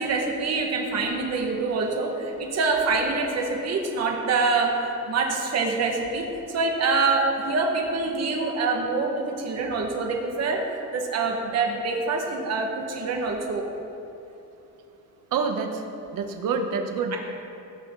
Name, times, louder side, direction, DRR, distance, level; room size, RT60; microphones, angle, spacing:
voice 1, 0.0-4.8 5.1-10.7 10.9-13.7 17.1-17.2, right 3 dB, 50° right, 1 dB, 2.0 m, -25 dB
voice 2, 15.3-15.8 16.1-17.2, right 5 dB, 65° right, 5 dB, 1.5 m, -27 dB
16.5 x 16.5 x 4.1 m, 3.0 s
cardioid pair, 170°, 35 cm